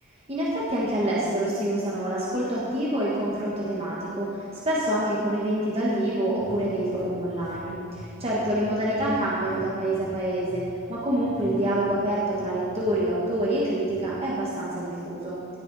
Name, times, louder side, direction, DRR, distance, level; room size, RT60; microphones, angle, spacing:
voice 1, 0.3-10.6 10.9-15.4, right 1 dB, 25° right, -6 dB, 1.3 m, -26 dB
sound 1, 6.4-7.6 7.9-8.1 8.4-12.5 12.8-13.0 13.3-13.5 13.9-14.1, equal, 5° right, 1.9 m, -44 dB
17.5 x 6.7 x 4.1 m, 2.8 s
head